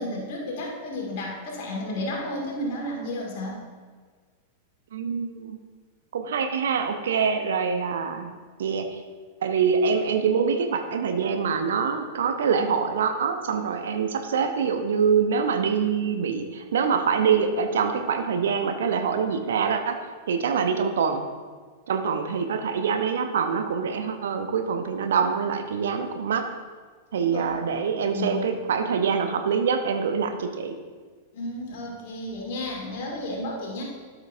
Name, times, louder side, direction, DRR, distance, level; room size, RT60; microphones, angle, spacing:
voice 1, 0.0-3.6 27.3-27.5 28.0-28.5 31.3-33.8, left 1 dB, 50° left, -2 dB, 2.0 m, -32 dB
voice 2, 4.9-5.6 6.1-8.3 8.6-9.0 9.4-20.0 20.3-21.3 21.9-26.4 27.1-30.8, right 6 dB, 60° right, 7 dB, 0.6 m, -25 dB
13.0 x 5.9 x 2.6 m, 1.5 s
figure-of-eight pair, 95°, 0 cm